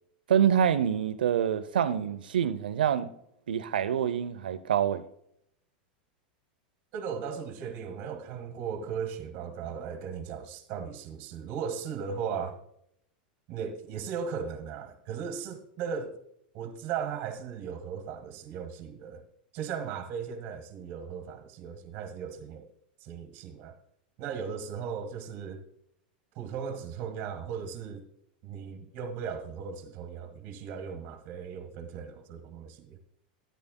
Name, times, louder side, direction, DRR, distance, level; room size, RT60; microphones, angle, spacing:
voice 1, 0.3-3.1 3.5-5.0, right 9 dB, 90° right, 0.6 m, -26 dB
voice 2, 6.9-12.6 13.5-16.2 16.5-19.2 19.5-22.7 23.0-23.8 24.2-25.6 26.4-28.0 28.4-33.0, right 7 dB, 50° right, 1.8 m, -37 dB
13.0 x 10.0 x 2.2 m
hypercardioid pair, 110°, 5 cm